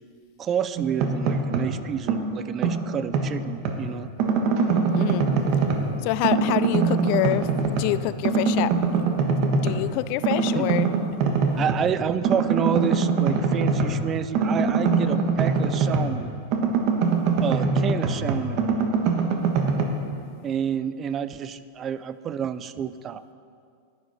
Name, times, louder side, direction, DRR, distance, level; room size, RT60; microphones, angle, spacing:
voice 1, 0.4-4.1 10.5-10.7 11.6-16.3 17.4-18.7 20.4-23.2, right 8 dB, 30° right, 14 dB, 0.4 m, -29 dB
sound 1, 0.8-1.8 2.1-3.8 4.2-5.9 6.2-8.0 8.2-9.8 10.2-11.9 12.2-16.2 16.5-19.8, right 4 dB, 50° right, 1.4 m, -23 dB
voice 2, 5.0-5.3 6.0-7.5 7.8-8.7 9.0-9.1 9.5-10.9, left 16 dB, 50° left, 16 dB, 0.3 m, -26 dB
9.5 x 9.4 x 5.8 m, 2.2 s
supercardioid pair, 135°, 0 cm